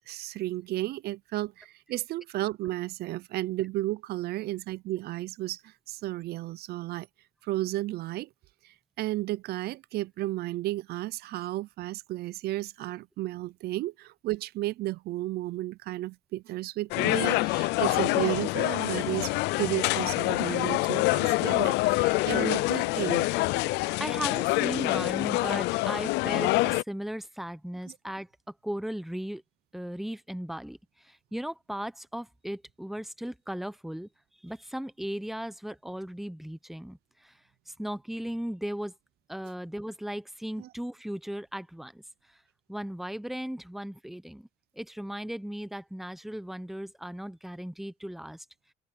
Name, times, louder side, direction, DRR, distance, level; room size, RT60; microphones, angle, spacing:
voice 1, 0.1-7.1 7.4-8.3 8.6-23.3 27.9-28.0 40.6-40.7, right 16 dB, 70° right, 0.5 m, -33 dB
sound 1, 16.9-26.8, left 22 dB, 90° left, 0.4 m, -26 dB
voice 2, 24.0-28.3 28.6-29.4 29.7-34.1 34.4-37.3 37.7-38.9 39.3-42.0 42.7-44.5 44.8-48.4, equal, ahead, 0.9 m, -37 dB
open air
cardioid pair, 110°, 17 cm